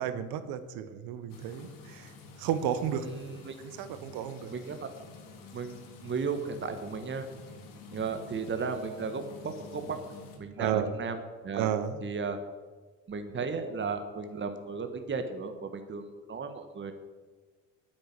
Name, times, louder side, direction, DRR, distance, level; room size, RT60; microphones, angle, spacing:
voice 1, 0.0-2.1 2.4-3.1 3.6-4.5 10.6-10.9 11.5-12.0, right 9 dB, 65° right, 12 dB, 1.1 m, -32 dB
sound 1, 1.3-10.4, left 3 dB, 60° left, 2.5 m, -49 dB
voice 2, 3.0-3.6 4.5-4.9 5.5-7.3 7.9-10.0 10.4-11.2 11.4-11.7 12.0-12.4 13.1-16.9, right 5 dB, 30° right, 7 dB, 1.4 m, -35 dB
9.4 x 7.8 x 8.8 m, 1.4 s
hypercardioid pair, 65°, 38 cm